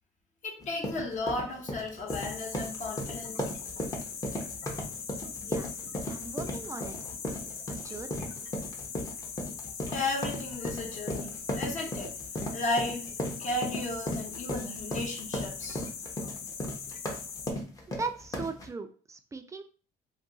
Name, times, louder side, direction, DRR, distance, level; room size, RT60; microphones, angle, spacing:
voice 1, 0.4-3.4 9.9-12.1 12.5-13.1 13.4-15.8, left 2 dB, 45° left, 1 dB, 0.9 m, -34 dB
sound 1, 0.6-18.7, left 1 dB, 20° left, 0.7 m, -36 dB
sound 2, 2.1-17.5, left 6 dB, 65° left, 0.5 m, -41 dB
voice 2, 6.1-7.1 7.7-8.3 18.0-19.6, right 4 dB, 20° right, 7 dB, 0.4 m, -39 dB
2.4 x 2.3 x 3.7 m, 0.39 s
cardioid pair, 110°, 17 cm